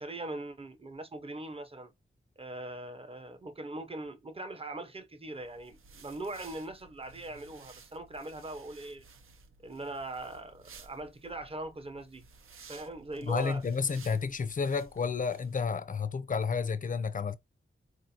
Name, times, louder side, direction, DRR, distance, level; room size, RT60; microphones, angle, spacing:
voice 1, 0.0-1.9 2.4-9.0 9.6-12.2 12.7-13.6, right 2 dB, 25° right, 0.6 m, -41 dB
sound 1, 5.4-15.6, right 4 dB, 80° right, 0.6 m, -56 dB
voice 2, 13.2-17.4, left 5 dB, 40° left, 0.4 m, -31 dB
4.0 x 2.4 x 2.7 m
wide cardioid pair, 115°, 21 cm